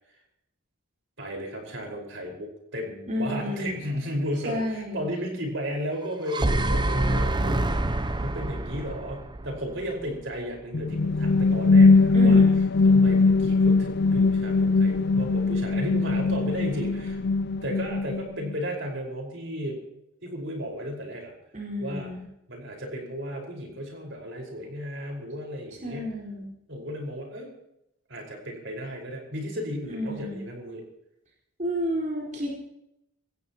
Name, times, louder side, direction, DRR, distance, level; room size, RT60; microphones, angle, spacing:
voice 1, 1.2-7.7 8.0-12.5 12.8-17.2 17.6-19.8 20.2-21.3 21.8-22.1 22.5-26.1 26.7-27.5 28.1-30.8, equal, 55° right, 1 dB, 5.0 m, -34 dB
voice 2, 3.1-3.8 4.4-5.0 12.1-12.6 21.5-22.2 25.8-26.5 29.9-30.4 31.6-32.6, equal, 35° right, -3 dB, 4.6 m, -31 dB
sound 1, 6.0-10.2, right 1 dB, 20° right, 0.6 m, -26 dB
sound 2, 10.7-18.5, left 3 dB, 50° left, 0.5 m, -20 dB
25.0 x 17.5 x 3.0 m, 0.80 s
head